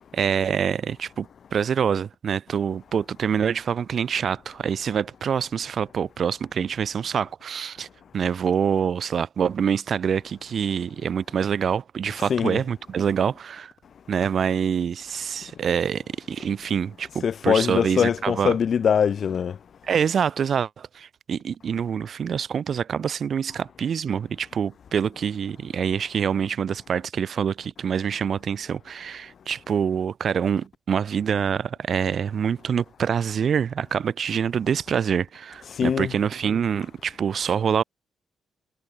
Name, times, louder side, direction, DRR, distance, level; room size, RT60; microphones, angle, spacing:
voice 1, 0.1-7.9 8.1-13.7 14.1-18.6 19.8-37.8, right 7 dB, 55° right, 2.5 m, -26 dB
voice 2, 17.2-19.6 35.8-36.1, left 7 dB, 55° left, 1.3 m, -22 dB
cardioid pair, 90°, 0 cm